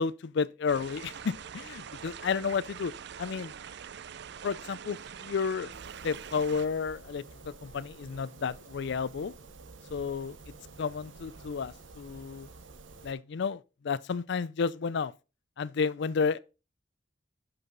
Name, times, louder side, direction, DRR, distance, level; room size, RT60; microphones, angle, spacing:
voice 1, 0.0-2.9 3.2-3.5 4.4-5.7 6.0-9.3 9.9-10.4 10.8-12.5 13.0-15.1 15.6-16.4, left 5 dB, 65° left, 0.4 m, -32 dB
sound 1, 0.7-6.7, right 7 dB, 65° right, 0.5 m, -44 dB
sound 2, 5.7-13.1, right 3 dB, 80° right, 1.1 m, -50 dB
11.0 x 5.6 x 3.9 m
head